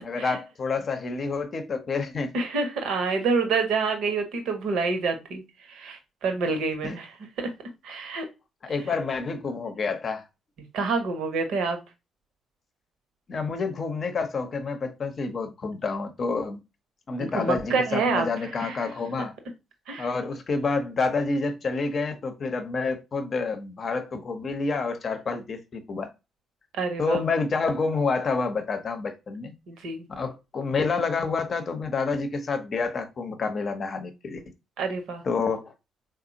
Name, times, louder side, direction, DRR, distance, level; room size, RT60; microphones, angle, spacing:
voice 1, 0.0-2.4 6.8-7.0 8.6-10.2 13.3-16.6 17.1-19.3 20.0-26.1 27.0-29.5 30.1-34.4 35.2-35.7, left 4 dB, 45° left, 0.7 m, -28 dB
voice 2, 2.3-5.4 5.7-7.5 7.8-8.3 10.7-11.8 17.2-18.3 18.6-18.9 19.9-20.1 26.8-27.2 29.7-30.1 34.8-35.2, right 4 dB, 65° right, 0.8 m, -27 dB
4.1 x 2.1 x 2.7 m
figure-of-eight pair, 40°, 0 cm